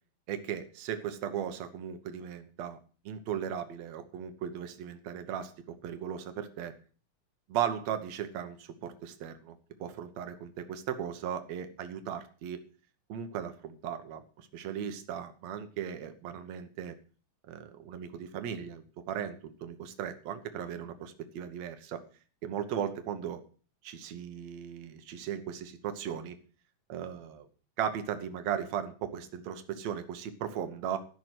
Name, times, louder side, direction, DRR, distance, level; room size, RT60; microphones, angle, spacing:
voice 1, 0.3-2.8 3.1-6.7 7.5-12.6 13.1-16.9 17.5-22.0 22.4-23.4 23.8-26.4 26.9-27.5 27.8-31.0, right 9 dB, 65° right, 9 dB, 2.4 m, -37 dB
14.0 x 6.0 x 7.7 m, 0.40 s
omnidirectional pair, 3.4 m